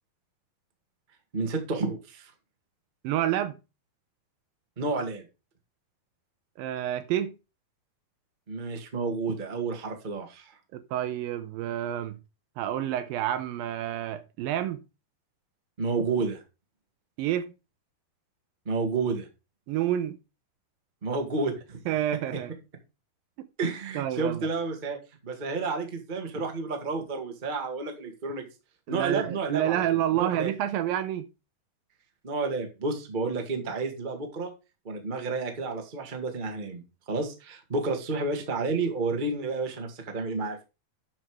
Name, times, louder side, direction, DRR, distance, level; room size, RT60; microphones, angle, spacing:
voice 1, 1.3-2.3 4.8-5.2 8.5-10.5 15.8-16.4 18.6-19.3 21.0-21.8 23.6-25.0 25.2-28.4 28.9-30.5 32.2-34.5 34.8-40.6, right 3 dB, 65° right, 0.4 m, -30 dB
voice 2, 3.0-3.6 6.6-7.3 10.7-12.2 12.6-14.8 17.2-17.5 19.7-20.2 21.9-22.5 23.4-23.5 24.0-24.5 28.9-31.3, right 12 dB, 80° right, 2.3 m, -29 dB
8.7 x 6.2 x 4.8 m
omnidirectional pair, 4.4 m